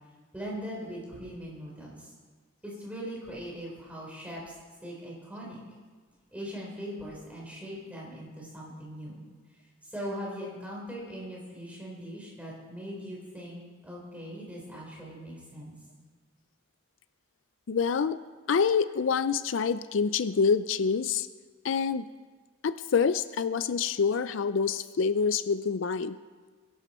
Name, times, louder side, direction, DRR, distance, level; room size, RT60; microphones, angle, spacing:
voice 1, 0.3-2.1 2.6-4.5 4.8-5.6 6.3-9.2 9.8-15.8, equal, 5° right, -4 dB, 4.1 m, -40 dB
voice 2, 17.7-18.2 18.5-21.3 21.6-22.1 22.6-26.2, left 5 dB, 70° left, 14 dB, 0.4 m, -26 dB
21.0 x 11.5 x 4.3 m, 1.5 s
head